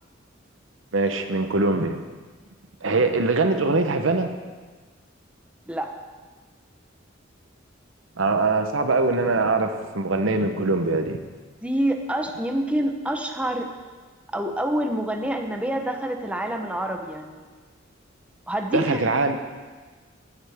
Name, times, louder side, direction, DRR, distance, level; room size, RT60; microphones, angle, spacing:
voice 1, 0.9-2.0 2.8-4.3 8.2-11.2 18.7-19.4, right 3 dB, 85° right, 7 dB, 0.9 m, -22 dB
voice 2, 11.6-13.7 14.3-17.5 18.5-19.0, right 1 dB, 5° right, 4 dB, 0.8 m, -27 dB
15.0 x 9.8 x 3.6 m, 1.4 s
head